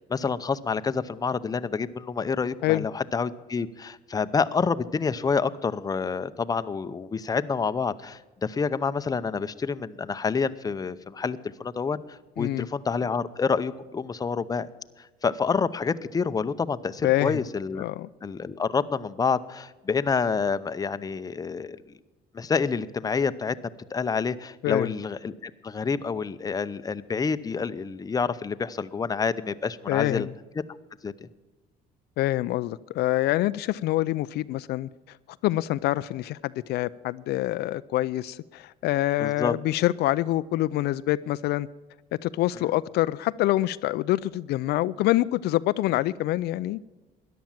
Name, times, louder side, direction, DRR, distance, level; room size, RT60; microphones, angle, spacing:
voice 1, 0.1-14.7 15.0-17.8 18.2-21.8 22.3-23.5 23.9-30.3 31.0-31.3 39.2-39.5, left 5 dB, 20° left, 12 dB, 0.6 m, -28 dB
voice 2, 12.4-12.7 17.0-17.4 17.8-18.1 24.6-24.9 29.9-30.3 32.2-34.9 35.4-41.7 42.2-46.8, left 16 dB, 75° left, 15 dB, 0.4 m, -26 dB
13.5 x 10.5 x 7.3 m, 1.2 s
cardioid pair, 110°, 17 cm